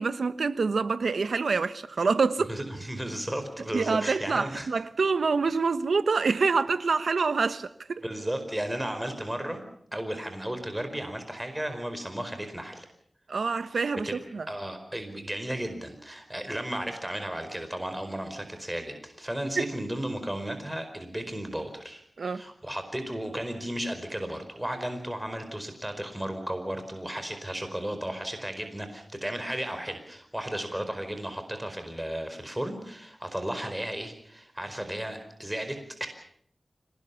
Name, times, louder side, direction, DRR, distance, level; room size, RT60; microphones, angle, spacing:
voice 1, 0.0-2.5 3.7-8.0 13.3-14.5 19.6-19.7 22.2-22.5, right 4 dB, 85° right, 1.1 m, -26 dB
voice 2, 2.5-4.7 8.0-9.6 9.9-12.8 14.1-14.2 14.5-22.0 22.3-36.1, right 1 dB, 10° right, 4.7 m, -34 dB
26.0 x 19.5 x 7.1 m
cardioid pair, 50°, 0 cm